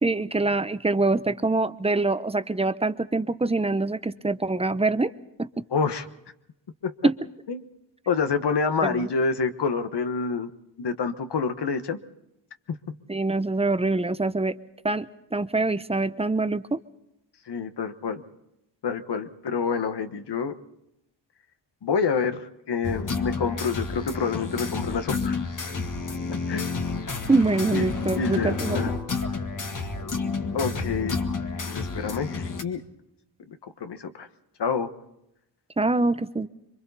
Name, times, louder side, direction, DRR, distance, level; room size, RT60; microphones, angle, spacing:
voice 1, 0.0-5.1 5.4-5.6 7.0-7.1 8.8-9.1 13.1-14.5 14.8-16.8 27.3-28.8 35.8-36.5, right 3 dB, 15° right, 12 dB, 0.8 m, -24 dB
voice 2, 5.7-6.1 6.8-6.9 7.5-7.6 8.1-10.5 10.8-12.0 12.7-12.8 17.5-18.2 18.8-20.5 21.8-25.4 26.5-26.7 27.7-27.9 28.1-28.9 30.5-31.2 31.7-32.8 33.5-34.3 34.6-34.9, left 5 dB, 65° left, 9 dB, 1.4 m, -27 dB
sound 1, 22.8-32.6, left 4 dB, 45° left, 1.8 m, -30 dB
26.5 x 23.5 x 4.1 m, 0.84 s
cardioid pair, 75°, 44 cm